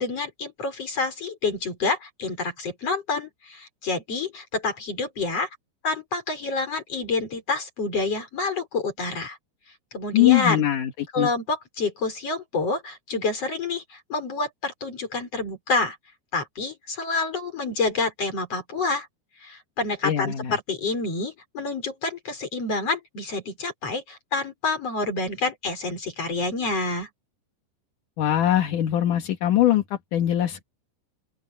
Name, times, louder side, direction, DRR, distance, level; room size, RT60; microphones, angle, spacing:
voice 1, 0.0-5.5 5.8-9.4 9.9-10.6 11.1-16.0 16.3-19.1 19.4-27.1, left 3 dB, 35° left, 6.7 m, -28 dB
voice 2, 10.1-11.3 20.0-20.6 28.2-30.6, left 12 dB, 55° left, 2.7 m, -22 dB
open air
omnidirectional pair, 5.1 m